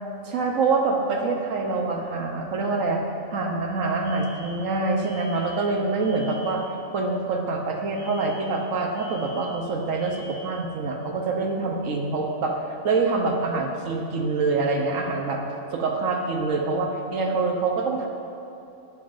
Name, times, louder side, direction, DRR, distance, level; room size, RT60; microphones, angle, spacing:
voice 1, 0.2-3.0 3.3-6.6 6.9-15.4 15.7-18.1, right 3 dB, 80° right, 1 dB, 1.3 m, -25 dB
Alarm, 4.0-6.7 7.9-10.7, equal, 85° left, 3.2 m, -46 dB
20.0 x 7.2 x 2.5 m, 2.8 s
omnidirectional pair, 1.3 m